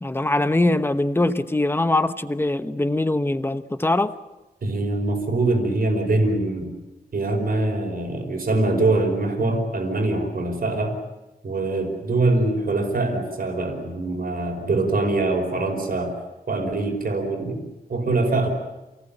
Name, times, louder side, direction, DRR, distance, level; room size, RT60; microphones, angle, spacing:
voice 1, 0.0-4.1, left 2 dB, 15° left, 10 dB, 1.0 m, -22 dB
voice 2, 4.6-6.7 7.1-11.0 11.4-16.1 16.5-17.6 17.9-18.5, right 2 dB, 70° right, 4 dB, 4.9 m, -23 dB
28.5 x 19.0 x 9.0 m, 1.1 s
wide cardioid pair, 140°, 16 cm